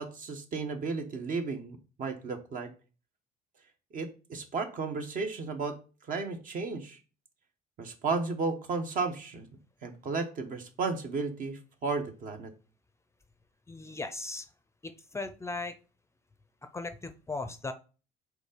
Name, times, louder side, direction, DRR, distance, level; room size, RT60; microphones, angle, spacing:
voice 1, 0.0-2.7 3.9-5.8 6.1-7.0 7.8-9.5 9.8-12.5, right 4 dB, 55° right, 5 dB, 1.2 m, -33 dB
voice 2, 13.7-14.5 14.8-15.8 16.7-17.7, left 3 dB, 15° left, 9 dB, 0.5 m, -37 dB
5.2 x 3.9 x 5.1 m, 0.35 s
cardioid pair, 110°, 17 cm